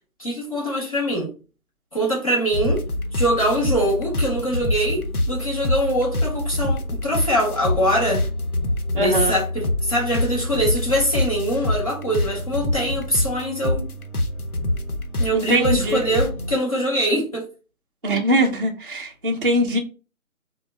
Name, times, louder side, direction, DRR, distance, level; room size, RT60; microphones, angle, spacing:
voice 1, 0.2-1.3 1.9-2.8 3.1-8.2 8.9-13.9 15.2-17.4, equal, 25° left, 0.8 m, -23 dB
sound 1, 2.5-16.6, left 1 dB, 80° left, 0.8 m, -26 dB
voice 2, 9.0-9.3 15.3-16.0 18.0-19.8, equal, 40° right, 0.4 m, -21 dB
3.2 x 2.1 x 3.3 m
figure-of-eight pair, 150°, 44 cm